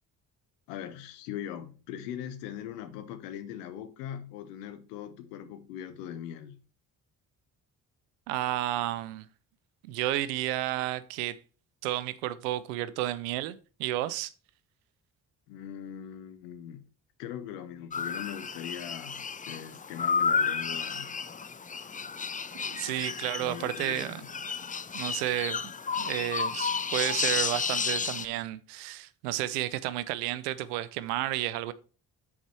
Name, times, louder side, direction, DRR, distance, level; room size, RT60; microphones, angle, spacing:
voice 1, 0.7-6.6 15.5-16.9 17.2-21.1 23.4-24.3 24.6-24.7, left 10 dB, 90° left, 0.8 m, -41 dB
voice 2, 8.3-9.3 9.8-11.4 11.8-14.3 22.5-24.3 24.9-25.6 26.0-31.7, right 14 dB, 85° right, 0.6 m, -32 dB
sound 1, 17.9-28.3, left 5 dB, 20° left, 0.5 m, -32 dB
7.1 x 4.9 x 4.4 m
hypercardioid pair, 45°, 46 cm